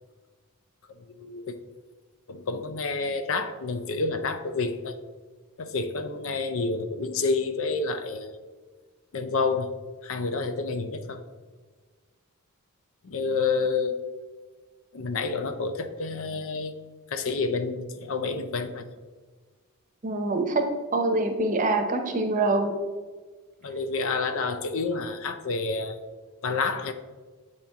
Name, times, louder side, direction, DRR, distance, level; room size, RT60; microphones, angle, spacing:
voice 1, 1.1-1.5 2.3-5.0 5.6-8.4 9.1-9.7 10.0-11.2 13.0-14.0 14.9-16.8 17.1-18.8 23.6-26.0 26.4-26.9, left 4 dB, 60° left, 9 dB, 0.5 m, -29 dB
voice 2, 20.0-20.7 20.9-22.8, right 2 dB, 35° right, 5 dB, 0.7 m, -25 dB
7.8 x 4.3 x 3.5 m, 1.4 s
head